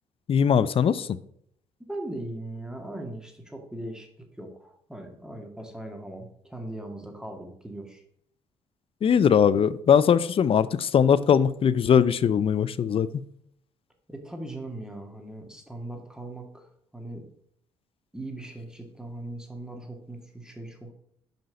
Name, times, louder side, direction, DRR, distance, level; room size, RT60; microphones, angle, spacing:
voice 1, 0.3-1.2 9.0-13.2, left 7 dB, 45° left, 0.5 m, -21 dB
voice 2, 1.9-8.0 14.1-17.2 18.1-20.9, right 1 dB, 5° right, 1.9 m, -39 dB
5.9 x 5.3 x 5.1 m
supercardioid pair, 65°, 13 cm